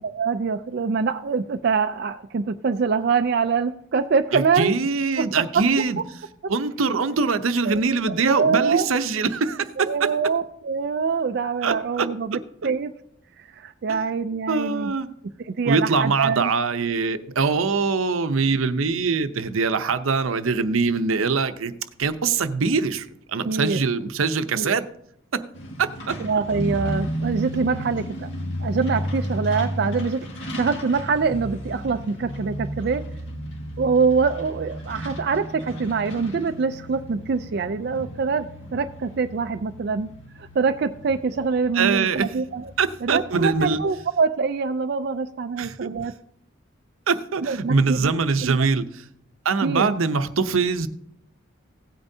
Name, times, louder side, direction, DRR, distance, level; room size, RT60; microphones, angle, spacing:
voice 1, 0.0-4.8 5.2-5.3 5.5-5.6 7.6-8.9 9.8-12.9 13.4-14.9 15.4-16.5 23.4-23.8 24.5-24.7 26.2-28.3 28.6-30.3 30.6-33.0 33.8-38.5 38.7-40.1 40.4-42.7 43.0-46.1 47.4-48.1 48.4-48.6 49.6-50.0, right 5 dB, 50° right, 8 dB, 0.4 m, -24 dB
voice 2, 4.3-6.0 6.5-9.9 11.6-12.1 14.5-15.1 15.6-21.7 22.0-24.9 25.3-25.4 25.8-26.2 41.7-42.3 42.8-43.8 45.6-45.9 47.1-48.9 49.4-50.9, right 4 dB, 85° right, 11 dB, 0.7 m, -23 dB
Truck, 25.5-44.0, equal, 60° left, 1.9 m, -34 dB
16.5 x 8.8 x 2.7 m, 0.72 s
head